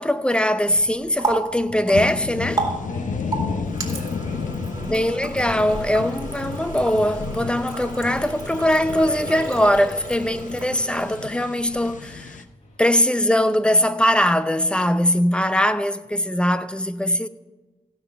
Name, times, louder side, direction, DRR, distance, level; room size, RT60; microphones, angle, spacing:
voice 1, 0.0-2.7 4.8-12.4 12.8-17.3, equal, 10° left, 0.6 m, -21 dB
Water tap faucet, 0.7-11.5, right 2 dB, 30° right, 2.4 m, -33 dB
sound 1, 1.9-12.4, left 5 dB, 80° left, 0.7 m, -32 dB
voice 2, 2.9-5.0 12.6-12.8, left 3 dB, 60° left, 1.4 m, -37 dB
16.5 x 5.9 x 4.6 m
cardioid pair, 70°, 13 cm